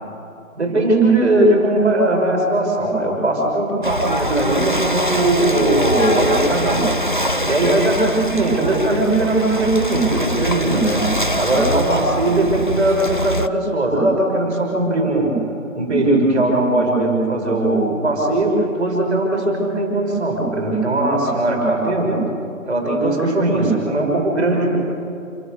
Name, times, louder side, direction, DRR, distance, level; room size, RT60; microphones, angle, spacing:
voice 1, 0.5-7.1 7.4-15.3 15.7-22.3 22.7-24.8, right 2 dB, 5° right, -15 dB, 4.3 m, -19 dB
Ocean / Boat Water vehicle, 3.8-13.5, equal, 40° right, 0.5 m, -23 dB
28.5 x 14.0 x 6.8 m, 2.6 s
figure-of-eight pair, 180°, 40 cm